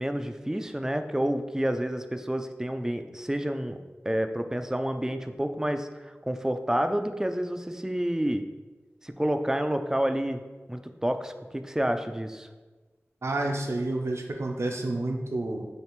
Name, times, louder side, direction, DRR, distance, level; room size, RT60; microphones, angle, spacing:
voice 1, 0.0-3.8 4.1-8.5 9.0-10.4 10.7-12.5, right 1 dB, 10° right, 7 dB, 0.3 m, -29 dB
voice 2, 13.2-15.7, right 2 dB, 65° right, 2 dB, 0.5 m, -29 dB
6.5 x 2.4 x 3.1 m, 1.3 s
wide cardioid pair, 60°, 5 cm